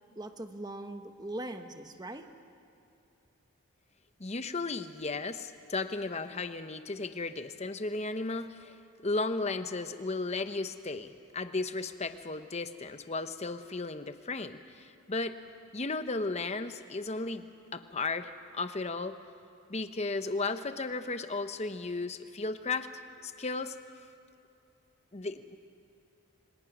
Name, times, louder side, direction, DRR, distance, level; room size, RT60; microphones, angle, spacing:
voice 1, 0.2-2.3, right 1 dB, 20° right, 7 dB, 1.1 m, -40 dB
voice 2, 4.2-15.4 15.7-17.4 17.7-19.2 19.7-22.9 23.2-23.8 25.1-25.6, left 3 dB, 30° left, 10 dB, 0.9 m, -35 dB
27.0 x 24.5 x 6.1 m, 2.7 s
head